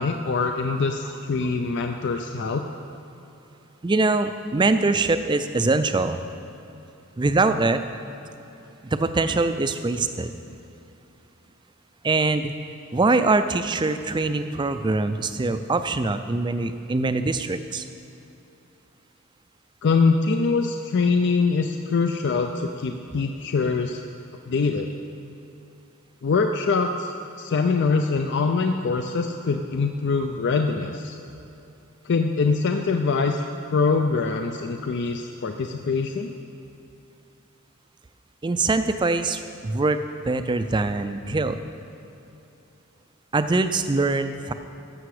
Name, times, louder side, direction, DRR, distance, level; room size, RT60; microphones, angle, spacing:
voice 1, 0.0-2.6 19.8-24.0 24.5-24.9 26.2-31.2 32.0-33.4 33.7-36.3, left 4 dB, 50° left, 5 dB, 0.4 m, -23 dB
voice 2, 3.8-6.2 7.2-7.8 8.8-10.3 12.0-12.5 12.9-17.8 38.4-40.0 40.3-41.6 43.3-44.5, right 3 dB, 20° right, 10 dB, 0.4 m, -23 dB
14.0 x 6.8 x 4.9 m, 2.9 s
head